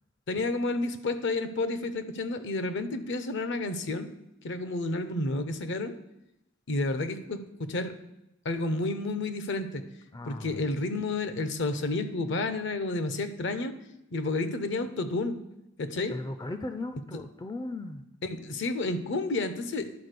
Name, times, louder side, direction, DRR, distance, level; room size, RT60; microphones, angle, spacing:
voice 1, 0.3-4.1 4.4-5.9 6.7-7.9 8.4-9.8 10.3-13.7 14.1-15.4 15.8-16.2 18.2-19.9, left 2 dB, 60° left, 11 dB, 0.7 m, -30 dB
voice 2, 10.1-10.7 16.1-18.0, left 2 dB, 20° left, 8 dB, 0.4 m, -37 dB
11.0 x 4.0 x 6.7 m, 0.88 s
head